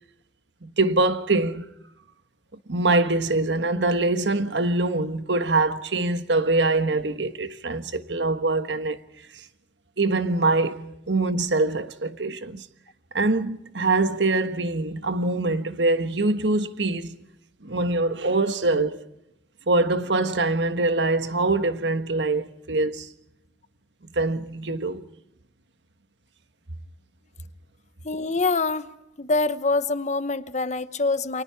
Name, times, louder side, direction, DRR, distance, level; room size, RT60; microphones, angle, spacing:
voice 1, 0.6-1.7 2.7-9.0 10.0-12.7 13.1-17.2 17.6-19.0 19.7-23.1 24.1-25.1, right 2 dB, 80° right, 1.4 m, -24 dB
voice 2, 28.0-28.9 29.2-31.4, left 3 dB, 40° left, 1.0 m, -25 dB
29.5 x 24.5 x 4.7 m
head